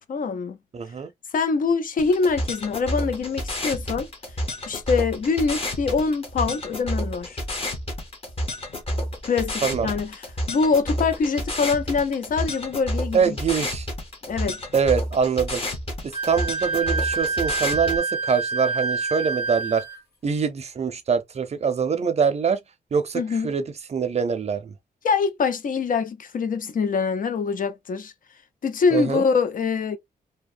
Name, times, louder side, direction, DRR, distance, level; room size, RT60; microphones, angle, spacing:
voice 1, 0.1-0.6 1.3-4.1 4.7-7.4 9.2-13.3 14.3-14.6 23.1-23.5 25.0-28.1 28.6-30.0, left 5 dB, 55° left, 0.5 m, -24 dB
voice 2, 0.7-1.1 9.6-9.9 13.1-13.9 14.7-15.6 16.0-19.8 20.2-22.6 22.9-23.6 23.9-24.7 28.9-29.2, right 6 dB, 40° right, 0.5 m, -24 dB
sound 1, 2.0-18.0, left 1 dB, 35° left, 0.9 m, -30 dB
Wind instrument woodwind instrument, 16.1-20.0, right 4 dB, 85° left, 1.1 m, -27 dB
2.8 x 2.0 x 2.4 m
wide cardioid pair, 110°, 16 cm